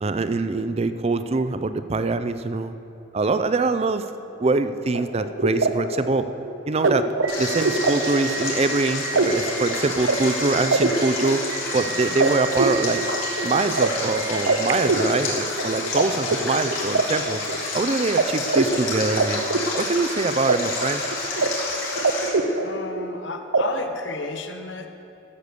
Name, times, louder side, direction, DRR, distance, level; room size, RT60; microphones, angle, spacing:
voice 1, 0.0-2.8 3.1-4.0 4.4-6.3 6.7-7.1 7.4-11.4 11.7-13.0 13.4-17.4 17.7-19.5 19.8-21.0, right 3 dB, 30° right, 11 dB, 0.4 m, -24 dB
sound 1, 4.9-16.0 16.3-17.8 18.2-18.3 18.5-20.6 20.8-21.5 21.7-23.2 23.5-23.6, right 3 dB, 80° right, 0.8 m, -24 dB
Stream, 7.3-22.3, left 3 dB, 85° left, 3.4 m, -30 dB
voice 2, 21.7-22.1 22.6-24.9, left 3 dB, 65° left, 6 dB, 1.0 m, -33 dB
13.5 x 8.0 x 6.8 m, 2.7 s
head